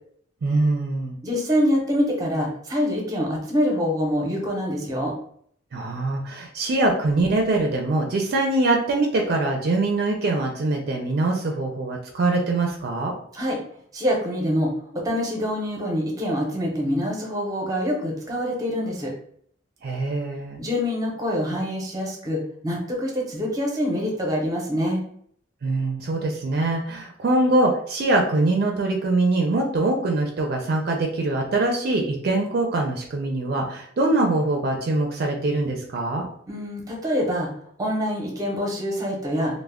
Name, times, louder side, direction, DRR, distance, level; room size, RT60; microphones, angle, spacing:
voice 1, 0.4-1.2 5.7-13.2 19.8-20.6 25.6-36.3, right 2 dB, 55° right, 1 dB, 0.4 m, -23 dB
voice 2, 1.2-5.1 13.3-13.6 13.9-19.1 20.6-25.0 36.5-37.5 37.8-39.6, equal, 20° right, -1 dB, 0.7 m, -25 dB
2.2 x 2.1 x 3.4 m, 0.64 s
head